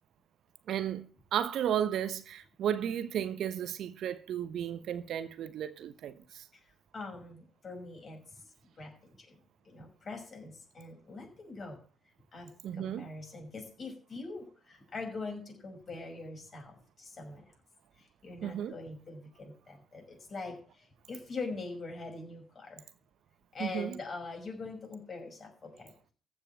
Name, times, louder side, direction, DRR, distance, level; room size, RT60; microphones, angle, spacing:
voice 1, 0.7-1.1 1.3-6.5 12.6-13.1 18.4-18.8 23.6-24.0, right 9 dB, 60° right, 1.0 m, -34 dB
voice 2, 6.5-8.5 8.8-9.4 9.6-11.8 12.3-17.4 18.0-22.8 23.5-25.9, left 3 dB, 40° left, 5.8 m, -43 dB
15.0 x 5.5 x 8.7 m
hypercardioid pair, 50°, 0 cm